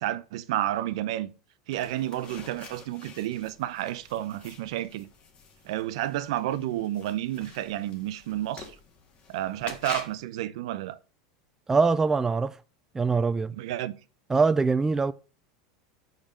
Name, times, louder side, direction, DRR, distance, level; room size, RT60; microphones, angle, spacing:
voice 1, 0.0-1.3 1.7-5.1 5.7-8.7 9.3-11.0 13.5-13.9, right 13 dB, 70° right, 0.6 m, -31 dB
sound 1, 1.7-10.2, left 5 dB, 40° left, 1.9 m, -47 dB
voice 2, 11.7-12.5 12.9-13.5 14.3-15.1, right 4 dB, 15° right, 0.3 m, -23 dB
5.2 x 5.2 x 6.3 m
hypercardioid pair, 100°, 3 cm